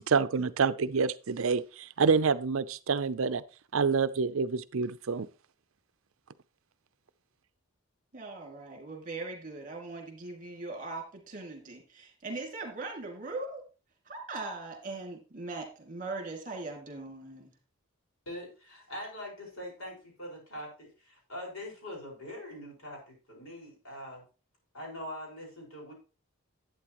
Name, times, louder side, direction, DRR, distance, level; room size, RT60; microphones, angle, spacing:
voice 1, 0.0-3.4 3.7-5.3, right 5 dB, 65° right, 0.5 m, -27 dB
voice 2, 8.1-13.6 14.1-17.5, right 3 dB, 35° right, 2.2 m, -40 dB
voice 3, 18.2-24.2 24.7-25.9, left 1 dB, 70° left, 5.1 m, -43 dB
11.5 x 8.5 x 3.0 m
head